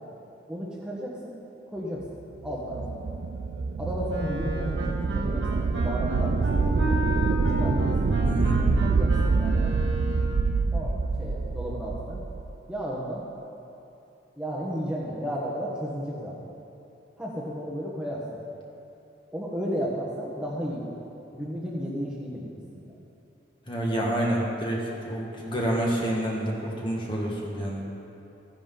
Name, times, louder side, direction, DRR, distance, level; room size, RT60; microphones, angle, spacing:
voice 1, 0.5-1.3 1.7-2.1 2.4-3.0 3.8-6.4 7.3-8.1 8.8-9.8 10.7-12.2 12.7-13.3 14.4-16.4 17.2-18.3 19.3-21.0 21.3-22.9, equal, 5° right, -6 dB, 1.3 m, -33 dB
sound 1, 2.4-12.5, right 4 dB, 65° right, 0.4 m, -26 dB
Wind instrument woodwind instrument, 4.1-10.5, equal, 85° right, 1.7 m, -34 dB
voice 2, 8.2-8.6 23.7-24.8 25.1-27.8, right 1 dB, 25° left, -3 dB, 1.8 m, -28 dB
14.5 x 9.8 x 3.9 m, 2.8 s
head